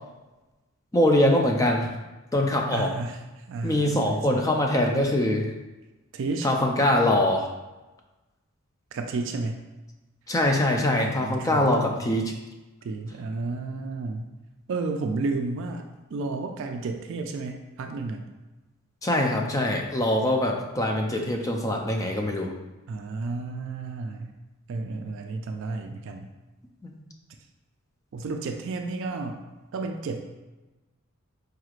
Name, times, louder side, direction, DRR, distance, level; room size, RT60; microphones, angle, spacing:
voice 1, 0.9-1.9 2.3-2.9 3.6-5.5 6.4-7.5 10.3-12.2 19.0-22.5 26.8-26.9, left 1 dB, 15° left, 2 dB, 0.4 m, -23 dB
voice 2, 2.7-4.5 6.1-6.5 8.9-9.6 11.0-12.2 12.8-14.3 14.7-15.8 16.1-18.3 22.9-24.4 24.7-26.3 28.1-29.4 29.7-30.2, right 3 dB, 60° right, 5 dB, 0.3 m, -32 dB
4.8 x 3.1 x 2.4 m, 1.1 s
head